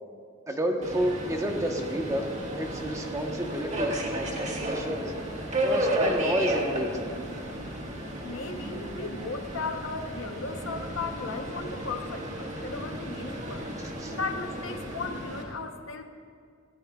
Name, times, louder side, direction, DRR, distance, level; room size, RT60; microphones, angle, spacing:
voice 1, 0.5-2.3 2.5-3.9 4.4-5.1 5.6-7.1 14.0-14.1, equal, 15° right, 2 dB, 1.1 m, -30 dB
Subway metro underground, 0.8-15.4, right 1 dB, 35° right, 1.7 m, -33 dB
voice 2, 8.2-13.7 14.1-16.0, left 4 dB, 70° left, 6 dB, 1.0 m, -36 dB
19.5 x 16.5 x 2.4 m, 2.2 s
head